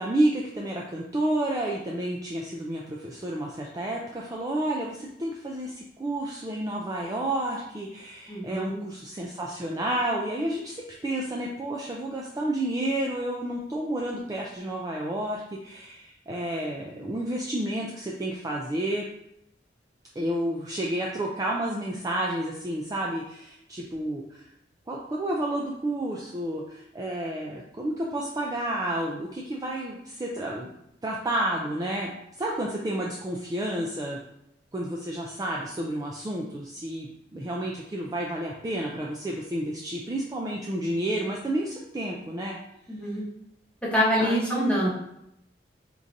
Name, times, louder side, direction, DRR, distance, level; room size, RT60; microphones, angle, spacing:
voice 1, 0.0-19.0 20.2-24.5 24.9-30.7 31.0-32.1 32.4-34.2 34.7-42.6 44.2-44.7, right 1 dB, 20° right, -2 dB, 0.3 m, -30 dB
voice 2, 8.3-8.8 42.9-43.3 43.8-44.9, equal, 5° left, -6 dB, 0.9 m, -25 dB
4.5 x 2.5 x 2.6 m, 0.79 s
head